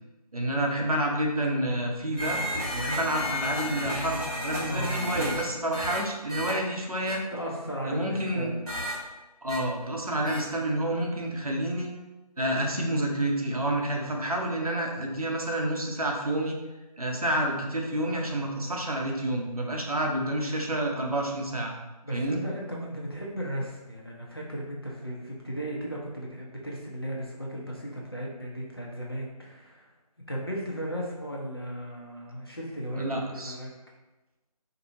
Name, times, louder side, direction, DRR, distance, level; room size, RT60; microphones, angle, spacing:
voice 1, 0.3-2.4 2.7-7.2 7.8-8.5 9.4-11.9 12.4-16.6 17.0-21.7 22.1-22.4 32.9-33.6, right 1 dB, 65° right, 0 dB, 0.7 m, -29 dB
sound 1, 2.2-5.4 5.7-6.0 6.3-6.5 7.1-7.2 8.7-8.9 9.5-9.6 10.2-10.4, equal, 5° left, 1.3 m, -32 dB
voice 2, 4.6-5.1 7.3-8.6 22.0-29.9 30.3-33.7, right 1 dB, 35° left, -3 dB, 0.6 m, -36 dB
4.1 x 2.6 x 2.6 m, 1.1 s
figure-of-eight pair, 170°, 20 cm